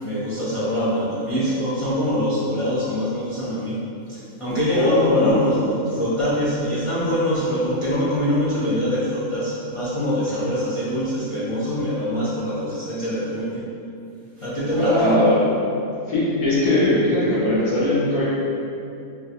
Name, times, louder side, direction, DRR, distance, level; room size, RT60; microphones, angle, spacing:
voice 1, 0.0-3.8 4.1-13.6 14.4-15.2, equal, 55° left, -11 dB, 0.3 m, -23 dB
voice 2, 4.7-5.4 14.8-15.4 16.1-18.2, left 1 dB, 85° left, -9 dB, 1.4 m, -20 dB
3.6 x 2.5 x 2.8 m, 2.7 s
omnidirectional pair, 1.4 m